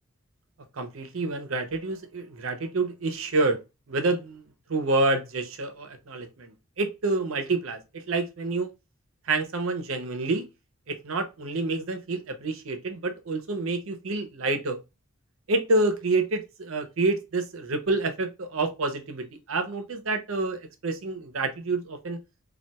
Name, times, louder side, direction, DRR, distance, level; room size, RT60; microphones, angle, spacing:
voice 1, 0.8-3.6 3.9-4.4 4.7-8.7 9.3-10.5 10.9-14.8 15.5-22.2, right 2 dB, 85° right, 0.7 m, -28 dB
4.1 x 2.4 x 2.2 m
head